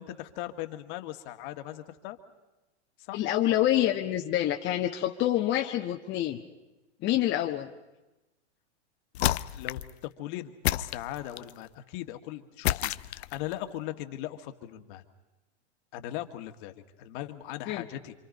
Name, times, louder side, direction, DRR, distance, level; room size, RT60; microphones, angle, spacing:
voice 1, 0.0-2.2 3.0-3.2 9.5-15.0 15.9-18.1, left 13 dB, 45° left, 7 dB, 1.8 m, -39 dB
voice 2, 3.1-6.4 7.0-7.7 17.7-17.8, left 13 dB, 30° left, 1 dB, 1.3 m, -27 dB
sound 1, 9.1-9.9 10.6-11.6 12.6-13.5, left 13 dB, 70° left, 0.7 m, -29 dB
27.5 x 26.0 x 5.3 m, 1.0 s
hypercardioid pair, 125°, 34 cm